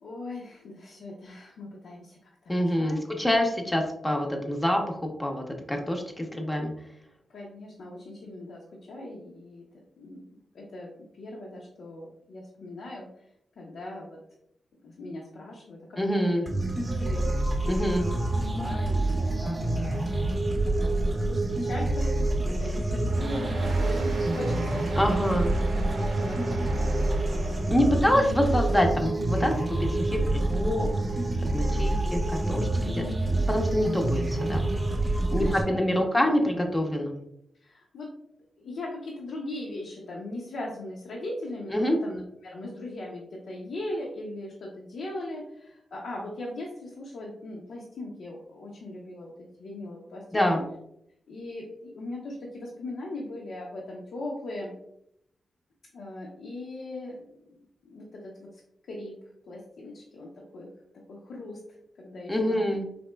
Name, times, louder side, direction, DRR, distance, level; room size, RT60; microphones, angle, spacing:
voice 1, 0.0-3.0 7.3-9.7 10.0-10.3 10.5-10.9 11.2-13.1 13.6-14.2 14.8-16.5 17.0-17.3 18.0-18.1 18.5-20.0 20.6-24.8 26.0-26.5 26.8-26.9 27.9-28.1 31.7-32.0 35.4-36.0 37.6-38.1 38.6-50.5 51.3-54.7 55.9-57.6 57.8-58.6 58.9-59.1 59.5-60.7 61.1-61.6 62.0-62.8, left 1 dB, 80° left, -3 dB, 0.6 m, -39 dB
voice 2, 2.5-6.7 16.0-16.5 17.7-18.1 25.0-25.5 27.7-30.9 31.5-33.0 33.3-34.7 35.1-37.2 41.7-42.0 50.3-50.6 62.3-62.8, equal, 15° left, 2 dB, 0.6 m, -26 dB
sound 1, 16.5-35.6, right 2 dB, 25° right, 0.7 m, -27 dB
sound 2, 23.1-28.2, right 1 dB, 85° right, 0.7 m, -37 dB
4.1 x 2.8 x 2.2 m, 0.76 s
cardioid pair, 90°, 0 cm